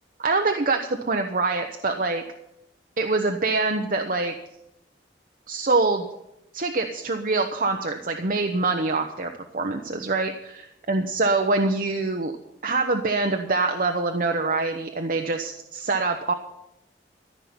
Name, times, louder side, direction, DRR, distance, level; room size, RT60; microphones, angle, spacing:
voice 1, 0.2-2.2 3.0-4.3 5.5-6.1 6.5-12.3 12.6-16.3, right 3 dB, 50° right, 5 dB, 0.8 m, -25 dB
14.5 x 5.9 x 9.5 m, 0.85 s
head